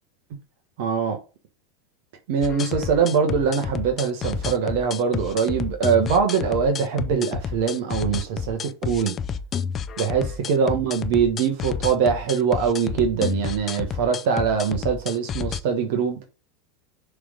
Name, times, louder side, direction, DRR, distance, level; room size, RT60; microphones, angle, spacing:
voice 1, 0.8-1.2 2.3-9.1 10.0-16.2, right 6 dB, 60° right, 1.4 m, -23 dB
sound 1, 2.4-15.6, left 7 dB, 35° left, 0.6 m, -30 dB
6.7 x 3.6 x 5.4 m
hypercardioid pair, 90°, 0 cm